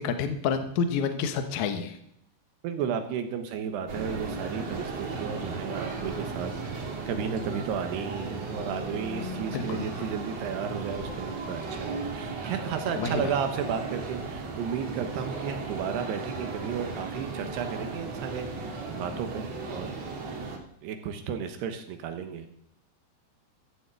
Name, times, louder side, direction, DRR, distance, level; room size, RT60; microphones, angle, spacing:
voice 1, 0.0-2.0 9.5-9.9 12.9-13.2, left 6 dB, 75° left, 7 dB, 1.8 m, -29 dB
voice 2, 2.6-19.9 20.8-22.5, right 7 dB, 75° right, 7 dB, 3.0 m, -33 dB
sound 1, 3.9-20.6, right 3 dB, 45° right, 2.6 m, -36 dB
14.5 x 7.1 x 8.0 m, 0.75 s
omnidirectional pair, 5.0 m